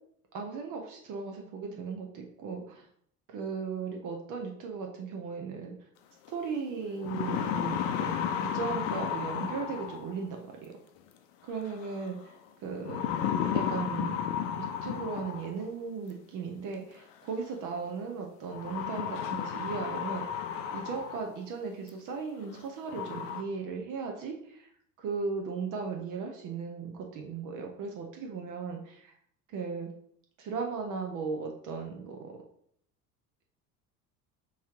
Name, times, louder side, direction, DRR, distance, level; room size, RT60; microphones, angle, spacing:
voice 1, 0.3-2.9 3.3-5.7 6.3-8.1 8.4-10.7 11.4-13.0 13.5-14.2 14.6-24.7 25.0-29.1 29.5-29.9 30.4-32.3, right 5 dB, 40° right, 2 dB, 0.7 m, -37 dB
sound 1, 6.3-6.4 6.8-10.2 11.7-12.1 12.9-15.7 16.9-17.0 18.5-21.4 21.9-22.0 22.5-22.6 22.9-23.4, left 8 dB, 55° left, 0.6 m, -33 dB
4.2 x 3.2 x 3.6 m, 0.67 s
figure-of-eight pair, 65°, 48 cm